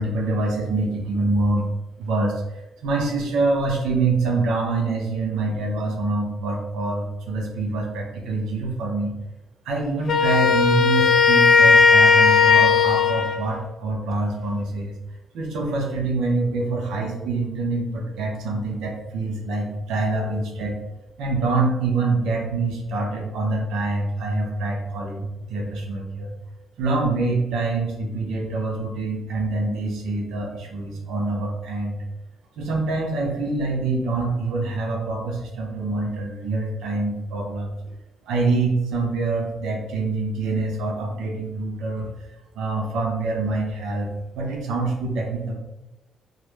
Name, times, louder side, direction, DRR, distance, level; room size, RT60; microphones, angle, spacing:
voice 1, 0.0-1.7 2.0-9.1 9.6-15.0 15.3-20.8 21.2-26.3 26.8-32.1 32.6-37.8 38.3-42.1 42.5-45.5, right 3 dB, 85° right, 0 dB, 0.6 m, -25 dB
Wind instrument woodwind instrument, 10.1-13.4, left 5 dB, 60° left, 0.3 m, -16 dB
2.4 x 2.0 x 3.0 m, 1.0 s
cardioid pair, 90°, 0 cm